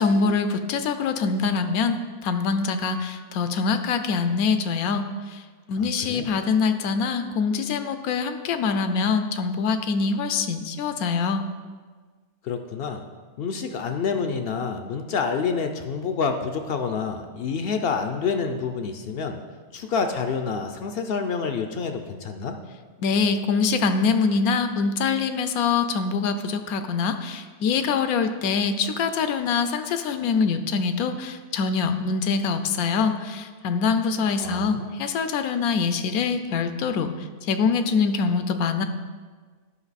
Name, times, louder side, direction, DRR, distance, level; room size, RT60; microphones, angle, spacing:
voice 1, 0.0-5.4 5.7-11.4 23.0-38.8, left 5 dB, 85° left, 9 dB, 1.1 m, -24 dB
voice 2, 12.4-13.0 13.4-19.4 19.7-22.6 34.4-35.0, left 5 dB, 65° left, 6 dB, 0.6 m, -28 dB
11.0 x 5.2 x 4.1 m, 1.5 s
omnidirectional pair, 1.5 m